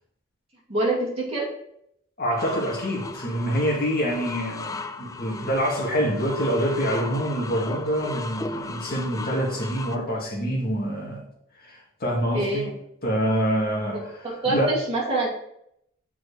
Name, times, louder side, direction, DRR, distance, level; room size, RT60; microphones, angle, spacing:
voice 1, 0.7-1.5 12.3-12.7 14.2-15.3, right 2 dB, 30° right, -4 dB, 2.4 m, -25 dB
voice 2, 2.2-11.2 11.6-12.7 13.0-14.1 14.5-14.8, equal, 45° left, -2 dB, 2.1 m, -26 dB
sound 1, 2.4-10.0, left 3 dB, 15° left, 0.3 m, -36 dB
6.6 x 4.8 x 4.9 m, 0.74 s
head